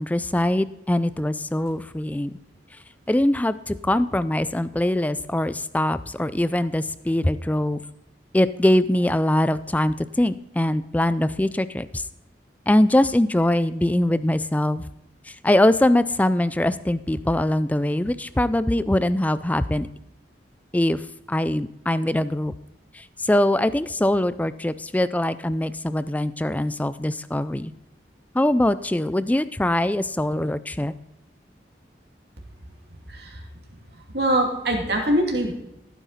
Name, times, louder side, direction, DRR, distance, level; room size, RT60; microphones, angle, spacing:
voice 1, 0.0-2.3 3.1-7.8 8.3-12.0 12.7-14.8 15.3-19.9 20.7-21.0 21.3-22.5 22.9-27.7 28.3-30.9, left 1 dB, 10° left, 15 dB, 0.4 m, -22 dB
voice 2, 33.1-33.4 34.1-35.6, right 1 dB, 60° right, 0 dB, 2.5 m, -23 dB
15.0 x 9.2 x 4.1 m, 0.91 s
head